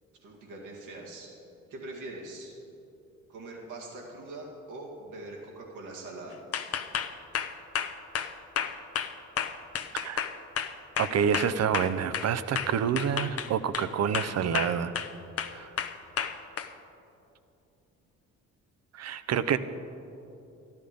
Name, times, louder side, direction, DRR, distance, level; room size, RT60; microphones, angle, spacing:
voice 1, 0.2-1.3 1.7-2.6 3.3-6.4, right 2 dB, 85° right, -2 dB, 2.1 m, -42 dB
sound 1, 6.5-12.3 12.6-13.9 14.1-15.1 15.4-16.7, left 8 dB, 50° left, 0.8 m, -31 dB
voice 2, 11.0-14.9 15.5-15.7 18.9-19.6, right 8 dB, 60° right, 13 dB, 0.7 m, -28 dB
13.0 x 11.5 x 5.2 m, 2.8 s
cardioid pair, 90°, 30 cm